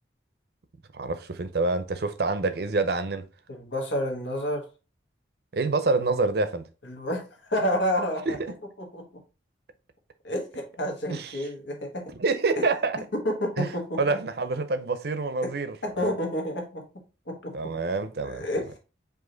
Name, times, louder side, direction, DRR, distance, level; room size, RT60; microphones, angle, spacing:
voice 1, 0.9-3.2 5.5-6.6 8.3-8.4 11.1-11.5 12.2-13.0 13.6-13.7 14.0-16.1 17.5-18.5, right 3 dB, 55° right, 0.6 m, -27 dB
voice 2, 3.5-4.6 6.8-8.4 8.8-9.1 10.2-12.0 12.6-12.7 13.1-14.0 15.4-15.5 15.8-16.8 17.3-17.7 18.2-18.8, equal, 80° left, 1.3 m, -29 dB
4.9 x 2.6 x 3.8 m
head